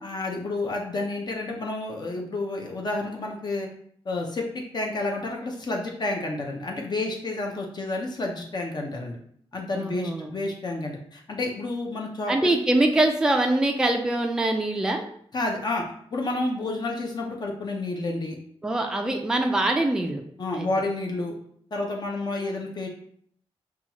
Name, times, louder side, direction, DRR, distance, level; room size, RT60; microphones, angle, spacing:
voice 1, 0.0-3.7 4.0-9.2 9.5-12.5 15.3-15.8 16.1-18.4 20.4-21.3 21.7-22.9, left 2 dB, 40° left, 1 dB, 0.6 m, -30 dB
voice 2, 9.7-10.3 12.3-15.0 18.6-20.2 20.5-20.7, right 2 dB, 5° right, 3 dB, 0.3 m, -23 dB
5.6 x 2.3 x 2.9 m, 0.64 s
wide cardioid pair, 160°, 11 cm